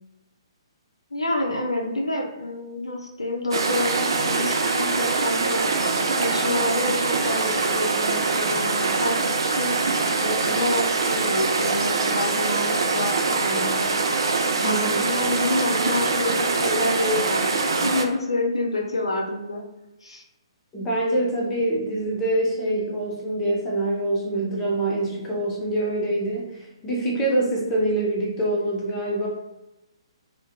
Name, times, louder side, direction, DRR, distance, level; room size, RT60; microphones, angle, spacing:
voice 1, 1.1-5.6 6.2-9.2 9.5-9.7 10.2-13.9 14.6-19.6 20.0-20.2, left 2 dB, 75° left, 0 dB, 0.4 m, -28 dB
sound 1, 3.5-18.0, right 4 dB, 60° right, 0.3 m, -23 dB
voice 2, 14.6-15.1 20.7-29.3, right 1 dB, 15° left, -3 dB, 0.6 m, -25 dB
2.5 x 2.1 x 2.7 m, 0.96 s
figure-of-eight pair, 130°, 3 cm